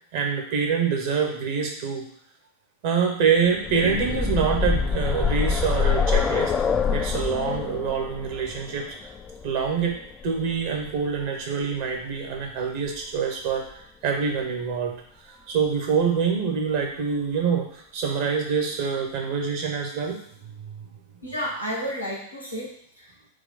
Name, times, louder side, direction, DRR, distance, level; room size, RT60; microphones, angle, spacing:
voice 1, 0.1-2.0 2.8-6.5 6.9-8.9 9.4-10.0 10.2-14.9 15.2-20.2, right 6 dB, 50° right, 1 dB, 1.0 m, -25 dB
sound 1, 3.4-11.2 12.4-12.5 12.9-13.0, left 6 dB, 20° left, 0.3 m, -26 dB
voice 2, 21.2-23.3, equal, 85° left, -4 dB, 1.2 m, -32 dB
4.7 x 2.3 x 4.0 m, 0.69 s
figure-of-eight pair, 90°, 0 cm